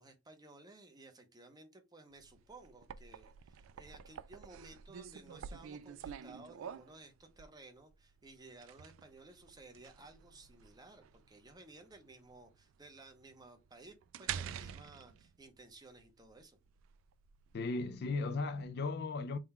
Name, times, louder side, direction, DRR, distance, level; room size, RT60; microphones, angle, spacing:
voice 1, 0.0-16.6, right 2 dB, 20° right, 0.7 m, -57 dB
sound 1, 2.2-18.7, right 8 dB, 80° right, 0.3 m, -48 dB
voice 2, 17.5-19.4, left 3 dB, 55° left, 0.4 m, -36 dB
3.7 x 2.3 x 4.2 m
head